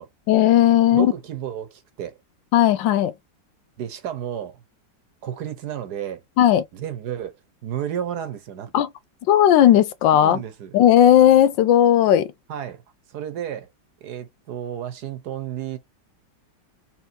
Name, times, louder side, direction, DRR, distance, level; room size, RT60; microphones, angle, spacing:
voice 1, 0.3-1.1 2.5-3.1 6.4-6.6 8.7-8.9 9.3-10.4 10.7-12.3, left 11 dB, 85° left, 1.3 m, -15 dB
voice 2, 0.9-2.2 3.8-4.6 5.2-6.2 6.7-7.4 7.6-8.7 10.1-10.8 12.5-12.8 13.1-13.7 14.0-15.8, right 10 dB, 65° right, 1.4 m, -32 dB
4.4 x 3.2 x 2.7 m
omnidirectional pair, 2.0 m